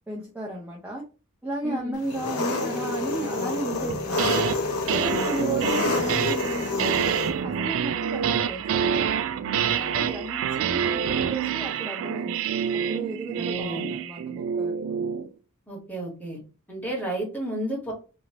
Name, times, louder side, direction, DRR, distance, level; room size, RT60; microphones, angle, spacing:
voice 1, 0.1-1.0 1.4-4.2 4.9-7.0 7.4-9.1 9.6-12.5 12.7-14.8, right 2 dB, 5° right, -4 dB, 0.6 m, -34 dB
voice 2, 1.6-2.0 5.3-5.8 13.4-14.0 15.7-16.4 16.7-17.9, right 1 dB, 10° left, -2 dB, 1.3 m, -32 dB
Engine, 2.0-7.3, left 2 dB, 80° left, 0.9 m, -28 dB
sound 1, 3.9-4.6 4.9-15.3, right 8 dB, 60° right, 0.3 m, -27 dB
2.9 x 2.7 x 2.8 m, 0.33 s
head